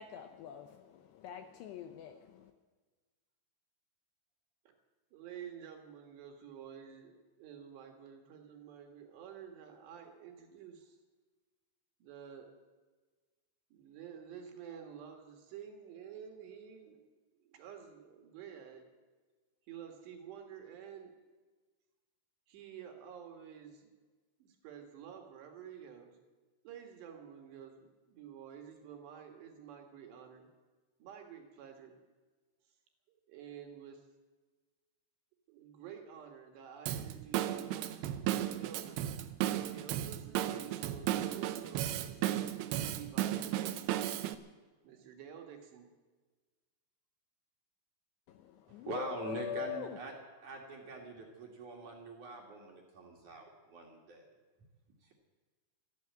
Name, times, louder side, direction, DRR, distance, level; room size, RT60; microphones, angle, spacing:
voice 1, 0.0-2.5 48.3-50.0, left 10 dB, 80° left, 7 dB, 2.6 m, -43 dB
voice 2, 5.1-11.0 12.0-12.5 13.7-17.0 17.4-18.8 19.7-21.1 22.5-23.9 24.4-26.2 26.6-30.5 31.0-32.0 33.1-34.0 35.5-38.1 38.5-39.2 39.7-44.2 44.8-45.9, right 8 dB, 70° right, 4 dB, 3.6 m, -50 dB
Drum kit / Drum, 36.9-44.4, right 12 dB, 85° right, 2.3 m, -35 dB
voice 3, 48.7-50.1 50.4-54.3, right 3 dB, 50° right, 0 dB, 2.7 m, -44 dB
13.5 x 12.0 x 8.7 m, 1.3 s
omnidirectional pair, 5.6 m